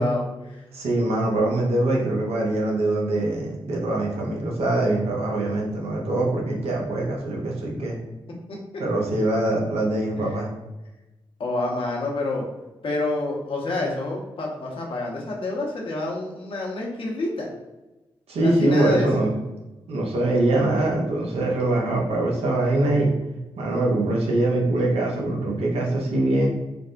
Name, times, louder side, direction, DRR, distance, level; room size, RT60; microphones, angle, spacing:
voice 1, 0.0-0.6 8.5-8.6 10.2-10.4 11.4-12.5 12.8-17.5 18.4-19.1, left 2 dB, 60° left, -2 dB, 0.8 m, -28 dB
voice 2, 0.7-8.0 8.8-10.5 18.3-19.3 19.9-23.1 23.6-26.5, right 2 dB, 75° right, -1 dB, 0.7 m, -23 dB
3.4 x 2.0 x 2.5 m, 1.1 s
hypercardioid pair, 40°, 10 cm